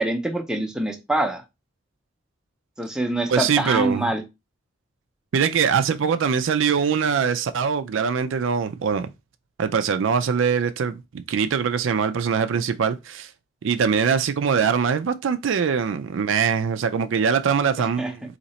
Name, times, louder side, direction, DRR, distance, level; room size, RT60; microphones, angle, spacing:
voice 1, 0.0-1.4 2.8-4.2 17.8-18.1, right 1 dB, 5° right, 0.6 m, -25 dB
voice 2, 3.3-4.1 5.3-9.1 9.6-13.3 13.6-18.2, right 6 dB, 65° right, 0.4 m, -22 dB
4.0 x 2.8 x 4.1 m
head